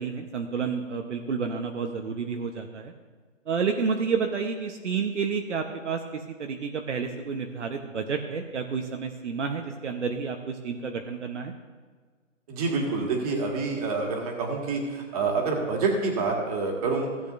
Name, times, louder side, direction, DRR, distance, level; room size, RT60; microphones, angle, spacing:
voice 1, 0.0-2.9 3.5-11.5, right 5 dB, 65° right, 3 dB, 1.1 m, -30 dB
voice 2, 12.5-17.1, right 4 dB, 30° right, 0 dB, 2.0 m, -27 dB
17.0 x 8.3 x 2.7 m, 1.5 s
hypercardioid pair, 155°, 39 cm